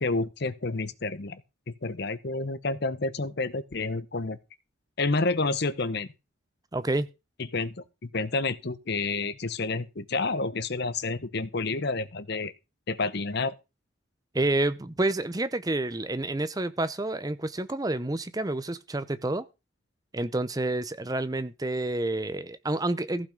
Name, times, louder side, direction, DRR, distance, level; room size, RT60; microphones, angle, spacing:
voice 1, 0.0-1.4 1.7-4.4 5.0-6.1 7.4-12.5 12.9-13.6, left 3 dB, 50° left, 0.8 m, -29 dB
voice 2, 6.7-7.1 14.3-19.4 20.1-23.3, right 2 dB, 20° right, 0.6 m, -29 dB
15.0 x 6.0 x 5.1 m
head